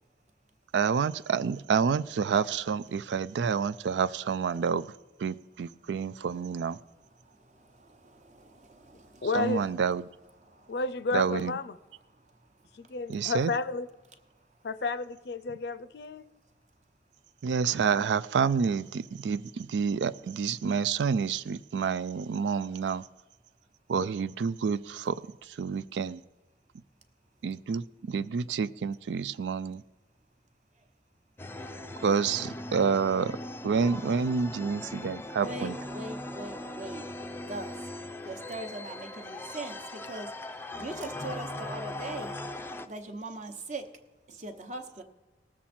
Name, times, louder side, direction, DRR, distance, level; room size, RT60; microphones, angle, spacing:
voice 1, 0.7-4.8 5.2-6.8 9.3-10.0 11.1-11.5 13.1-13.5 17.4-23.0 23.9-25.2 25.6-26.2 27.4-29.8 32.0-33.4 33.6-35.8, right 6 dB, 90° right, 16 dB, 0.4 m, -28 dB
voice 2, 7.8-9.3 35.4-37.0 37.4-37.7 38.2-40.3 40.8-42.3 42.9-43.8 44.4-45.0, right 2 dB, 40° right, 6 dB, 1.0 m, -40 dB
voice 3, 9.2-9.7 10.7-11.8 12.8-13.9 14.6-16.2, left 3 dB, 70° left, 15 dB, 0.5 m, -31 dB
sound 1, 31.4-42.9, left 1 dB, 15° left, 0.4 m, -40 dB
18.5 x 7.3 x 4.3 m, 1.1 s
head